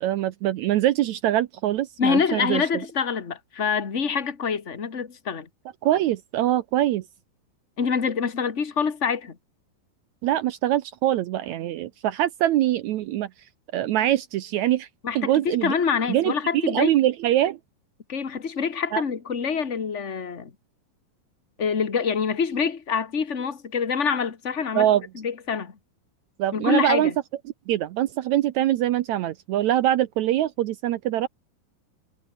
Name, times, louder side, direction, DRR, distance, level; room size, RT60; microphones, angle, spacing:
voice 1, 0.0-2.7 5.8-7.0 10.2-13.3 13.7-14.9 15.2-15.7 16.1-17.6 18.9-19.0 24.8-25.0 26.4-27.1 27.7-31.3, right 13 dB, 75° right, 1.8 m, -23 dB
voice 2, 2.0-5.5 7.8-9.3 15.0-16.9 18.1-20.5 21.6-24.9 25.1-25.7 26.5-27.1, left 6 dB, 30° left, 1.4 m, -26 dB
omnidirectional pair, 4.0 m